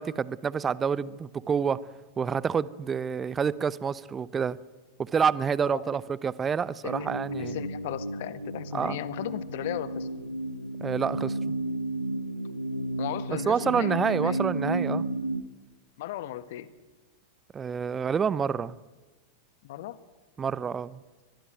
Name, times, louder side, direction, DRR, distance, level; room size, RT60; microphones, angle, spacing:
voice 1, 0.0-1.8 2.2-4.6 5.0-7.6 8.7-9.0 10.8-11.4 13.5-15.1 17.5-18.8 20.4-21.0, right 6 dB, 20° right, 21 dB, 0.8 m, -28 dB
sound 1, 6.9-15.4, right 1 dB, 90° left, 1.3 m, -32 dB
voice 2, 7.4-10.1 13.0-14.4 16.0-16.7 19.6-20.0, left 12 dB, 55° left, 16 dB, 1.4 m, -36 dB
22.5 x 22.0 x 9.2 m, 1.2 s
figure-of-eight pair, 90°, 0 cm